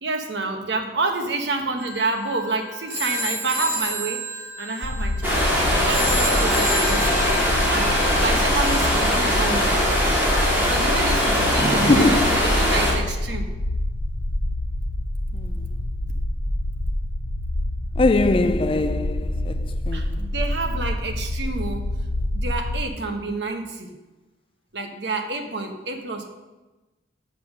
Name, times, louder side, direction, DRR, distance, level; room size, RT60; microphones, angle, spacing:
voice 1, 0.0-7.3 7.7-9.8 10.6-13.5 19.9-21.9 22.3-23.9 24.7-26.3, right 3 dB, 70° right, 1.1 m, -28 dB
sound 1, 1.8-9.9, left 1 dB, 90° right, 3.5 m, -31 dB
sound 2, 4.8-22.9, left 1 dB, 80° left, 1.2 m, -27 dB
sound 3, 5.2-12.9, equal, 10° right, 2.2 m, -21 dB
voice 2, 11.9-12.2 18.0-19.6 19.9-20.2, left 2 dB, 30° left, 0.3 m, -21 dB
8.1 x 5.9 x 6.1 m
head